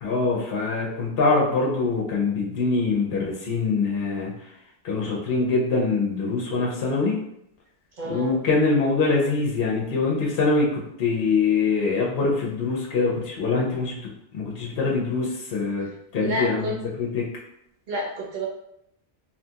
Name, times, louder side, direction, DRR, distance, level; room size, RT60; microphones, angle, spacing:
voice 1, 0.0-4.3 4.8-7.2 8.1-17.3, left 4 dB, 65° left, -3 dB, 0.8 m, -24 dB
voice 2, 8.0-8.4 15.8-15.9 16.1-16.8 17.9-18.5, equal, 50° right, -2 dB, 0.8 m, -29 dB
2.7 x 2.4 x 2.7 m, 0.78 s
omnidirectional pair, 1.1 m